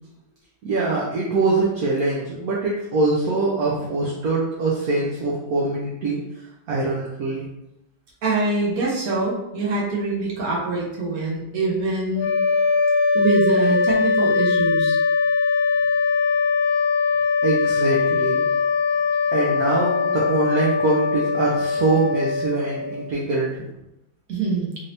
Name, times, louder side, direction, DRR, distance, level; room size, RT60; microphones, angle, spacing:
voice 1, 0.6-7.4 17.4-18.5 19.3-23.7, right 3 dB, 70° right, -4 dB, 0.9 m, -23 dB
voice 2, 8.2-12.3 13.1-15.0 24.3-24.7, right 3 dB, 50° right, -4 dB, 1.3 m, -24 dB
sound 1, 12.2-23.1, left 4 dB, 70° left, 1.4 m, -21 dB
4.0 x 2.7 x 3.3 m, 0.87 s
omnidirectional pair, 2.2 m